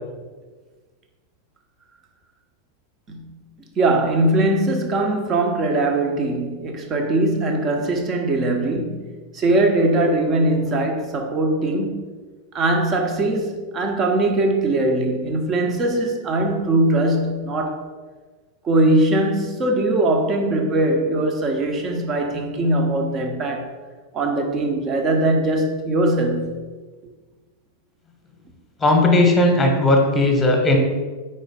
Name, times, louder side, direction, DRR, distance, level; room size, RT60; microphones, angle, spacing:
voice 1, 3.1-3.4 3.8-9.1 9.3-12.0 12.5-17.8 18.6-23.7 24.1-26.6, right 2 dB, 30° right, 0.9 m, -21 dB
voice 2, 28.8-30.8, left 2 dB, 10° left, 1.2 m, -16 dB
4.8 x 4.3 x 5.0 m
figure-of-eight pair, 90°, 0 cm